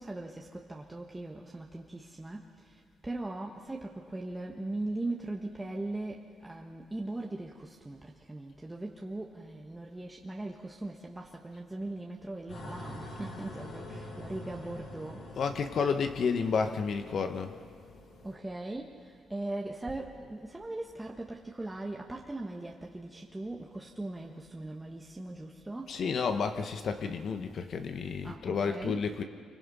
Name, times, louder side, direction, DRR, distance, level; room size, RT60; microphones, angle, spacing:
voice 1, 0.0-15.3 18.2-26.0 28.2-29.0, right 2 dB, 15° right, 0 dB, 1.5 m, -39 dB
sound 1, 12.5-18.5, left 1 dB, 75° left, 7.9 m, -45 dB
voice 2, 15.3-17.6 25.9-29.2, left 5 dB, 60° left, 7 dB, 1.3 m, -31 dB
26.0 x 24.5 x 5.6 m, 2.1 s
cardioid pair, 90°, 0 cm